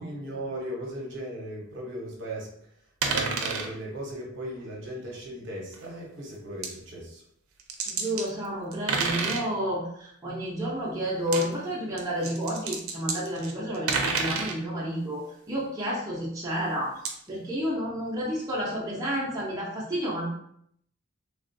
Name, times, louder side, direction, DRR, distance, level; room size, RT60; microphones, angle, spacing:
voice 1, 0.0-2.5 3.0-7.2, right 1 dB, 55° right, -3 dB, 0.8 m, -37 dB
sound 1, 3.0-3.7 5.7-5.9 6.6-6.7 7.6-8.3 8.7-9.4 11.2-11.4 12.0-14.6 17.0-17.1, right 4 dB, 85° right, 0.5 m, -29 dB
voice 2, 7.9-16.9 17.3-20.3, equal, 15° right, -7 dB, 0.7 m, -30 dB
3.3 x 2.4 x 2.6 m, 0.68 s
head